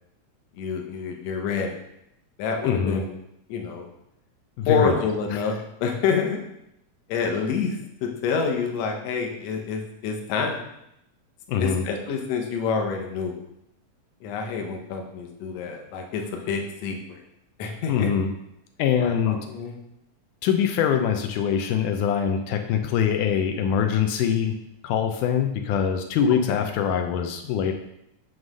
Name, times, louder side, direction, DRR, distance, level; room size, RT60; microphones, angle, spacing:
voice 1, 0.6-1.8 2.4-3.1 3.5-3.9 4.7-6.4 7.1-7.8 8.0-10.7 11.6-13.4 14.2-17.2 17.6-18.1 19.0-19.7 26.5-26.6, left 5 dB, 65° left, 2 dB, 1.8 m, -27 dB
voice 2, 2.6-3.0 4.6-5.0 5.3-5.5 11.5-11.8 17.9-18.3 18.8-19.4 20.4-24.5 24.8-27.7, left 8 dB, 85° left, 5 dB, 2.1 m, -23 dB
7.5 x 3.2 x 6.2 m, 0.81 s
omnidirectional pair, 3.6 m